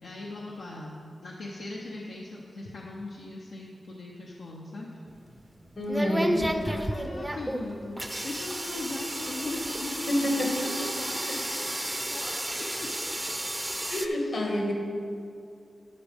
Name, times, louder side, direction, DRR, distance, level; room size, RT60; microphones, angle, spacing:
voice 1, 0.0-0.9 1.2-4.9 6.1-12.9 14.2-14.3, left 2 dB, 90° left, -3 dB, 0.8 m, -39 dB
sound 1, 5.1-14.1, right 1 dB, 15° right, 0.5 m, -32 dB
voice 2, 5.8-6.5 10.1-10.6 10.8-10.9 13.9-14.7, left 1 dB, 70° left, -1 dB, 1.7 m, -28 dB
12.0 x 6.4 x 3.5 m, 2.4 s
cardioid pair, 75°, 0 cm